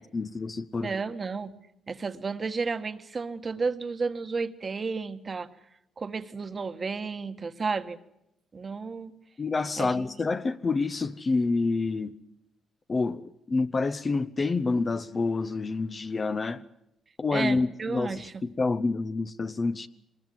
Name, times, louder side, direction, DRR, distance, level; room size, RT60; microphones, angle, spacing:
voice 1, 0.1-0.9 9.4-12.1 12.9-16.6 17.2-19.9, left 3 dB, 35° left, 0.8 m, -28 dB
voice 2, 0.8-1.5 1.9-5.5 6.0-8.0 8.5-9.1 9.8-10.1 17.3-18.3, right 4 dB, 35° right, 1.4 m, -32 dB
23.5 x 21.0 x 7.7 m
cardioid pair, 90°, 0 cm